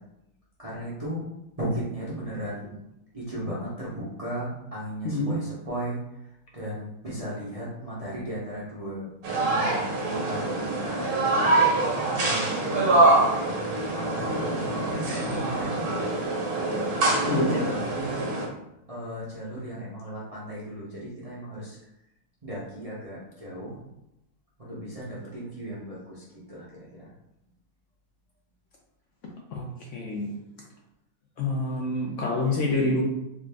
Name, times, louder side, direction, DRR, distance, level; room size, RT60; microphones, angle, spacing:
voice 1, 0.6-1.3 1.6-2.8 3.1-6.0 6.5-11.5 12.0-13.5 13.9-16.1 17.2-18.3 18.9-21.8 22.4-23.8 24.6-27.1, right 1 dB, 35° right, -7 dB, 0.5 m, -36 dB
voice 2, 5.0-5.4 17.3-17.6 29.5-30.3 31.4-33.0, left 2 dB, 65° left, -1 dB, 0.8 m, -27 dB
sound 1, 9.2-18.5, right 2 dB, 70° right, 1.3 m, -25 dB
3.7 x 2.4 x 3.3 m, 0.85 s
omnidirectional pair, 1.7 m